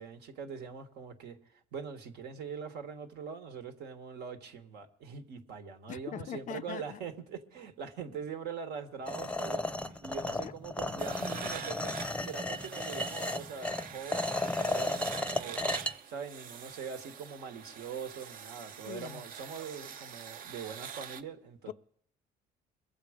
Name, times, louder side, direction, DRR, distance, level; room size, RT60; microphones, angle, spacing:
voice 1, 0.0-15.6 16.1-21.7, right 6 dB, 75° right, 1.5 m, -43 dB
voice 2, 5.9-7.0 10.4-10.5 18.9-19.2 21.7-21.8, left 11 dB, 50° left, 0.4 m, -41 dB
sound 1, 9.1-15.9, left 2 dB, 5° left, 0.6 m, -34 dB
sound 2, 11.0-21.2, right 8 dB, 55° right, 0.7 m, -45 dB
22.0 x 7.5 x 5.1 m
cardioid pair, 110°, 17 cm